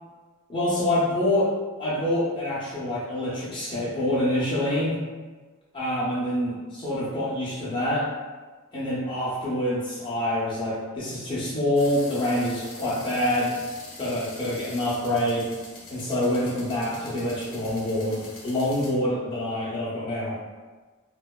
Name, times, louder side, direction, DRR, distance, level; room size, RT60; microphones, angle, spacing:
voice 1, 0.5-1.5 1.8-5.0 5.7-6.5 6.8-8.1 8.7-13.6 14.0-15.5 15.9-20.4, left 1 dB, 25° left, -8 dB, 0.6 m, -26 dB
sound 1, 11.8-18.9, left 2 dB, 75° left, 0.6 m, -44 dB
2.6 x 2.1 x 2.2 m, 1.3 s
head